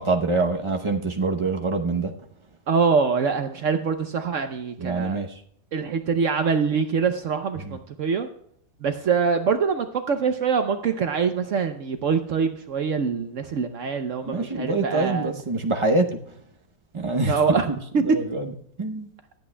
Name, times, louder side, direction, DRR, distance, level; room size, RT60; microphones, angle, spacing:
voice 1, 0.0-2.1 4.8-5.3 7.6-7.8 14.3-16.2 16.9-17.6 18.0-18.5 18.8-19.1, right 3 dB, 40° right, 3 dB, 0.4 m, -25 dB
voice 2, 2.7-5.2 5.7-8.3 8.8-15.3 17.3-18.0, right 5 dB, 60° right, 8 dB, 0.9 m, -24 dB
25.0 x 8.5 x 2.2 m, 0.67 s
omnidirectional pair, 1.8 m